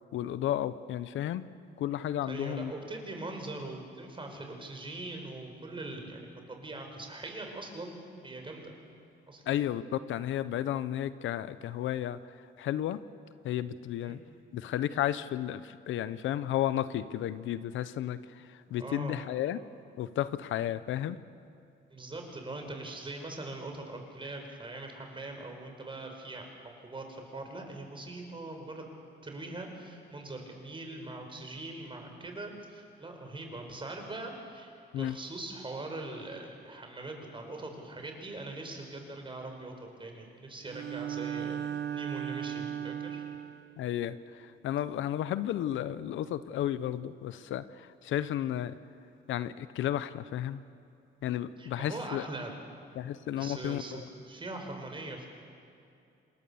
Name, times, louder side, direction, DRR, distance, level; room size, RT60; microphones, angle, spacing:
voice 1, 0.1-1.4 1.8-2.7 9.5-13.0 13.4-14.2 14.5-19.6 20.0-21.2 34.9-35.2 43.8-48.7 49.3-50.6 51.2-52.3 53.0-54.0, left 11 dB, 80° left, 14 dB, 0.8 m, -33 dB
voice 2, 2.3-8.7 9.3-9.4 14.0-14.2 18.7-19.2 21.9-26.5 26.8-28.8 29.2-39.7 40.0-43.2 51.6-52.5 53.4-54.0 54.3-55.3, right 2 dB, 25° right, 3 dB, 5.0 m, -42 dB
Bowed string instrument, 40.7-43.8, right 9 dB, 60° right, 0.9 m, -36 dB
27.5 x 20.0 x 7.0 m, 2.6 s
cardioid pair, 90°, 20 cm